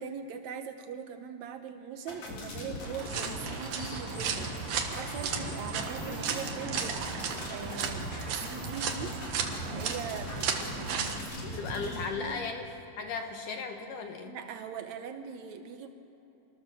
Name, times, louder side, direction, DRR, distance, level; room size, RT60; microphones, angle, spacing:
voice 1, 0.0-7.0 7.5-9.2 9.6-11.5 12.2-12.5 14.3-15.9, right 7 dB, 75° right, 7 dB, 1.6 m, -41 dB
sound 1, 2.1-12.1, left 1 dB, 50° left, 4.6 m, -40 dB
sound 2, 3.0-11.2, right 6 dB, 60° right, 2.6 m, -35 dB
voice 2, 11.4-12.7 13.0-14.4, left 4 dB, 65° left, 4 dB, 2.5 m, -36 dB
26.5 x 19.5 x 7.0 m, 3.0 s
omnidirectional pair, 4.5 m